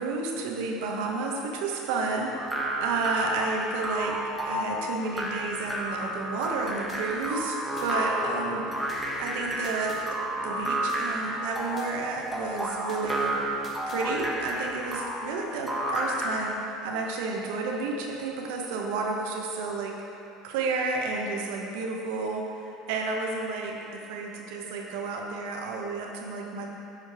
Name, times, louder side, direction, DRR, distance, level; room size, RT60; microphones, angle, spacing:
voice 1, 0.0-4.2 4.5-10.2 10.4-13.4 13.9-19.9 20.4-26.7, right 3 dB, 75° right, 0 dB, 1.1 m, -31 dB
sound 1, 2.4-16.6, right 1 dB, ahead, 1.4 m, -31 dB
sound 2, 6.9-7.9 8.9-10.0 10.9-11.9 12.9-14.0, left 2 dB, 30° left, 1.4 m, -50 dB
8.9 x 5.1 x 4.9 m, 2.8 s
hypercardioid pair, 80°, 0 cm